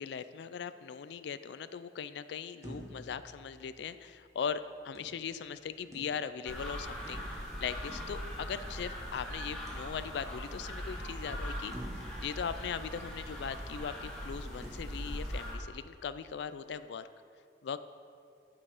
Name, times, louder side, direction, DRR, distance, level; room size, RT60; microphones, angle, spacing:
voice 1, 0.0-17.1 17.6-17.8, left 7 dB, 65° left, 13 dB, 0.3 m, -39 dB
sound 1, 2.6-4.2 4.9-6.6 7.0-9.0 9.7-10.5 11.0-11.1 11.7-13.4 14.6-14.7, equal, 15° right, 1.0 m, -50 dB
sound 2, 6.4-15.5, equal, 5° left, 1.3 m, -40 dB
9.3 x 5.4 x 4.9 m, 2.4 s
head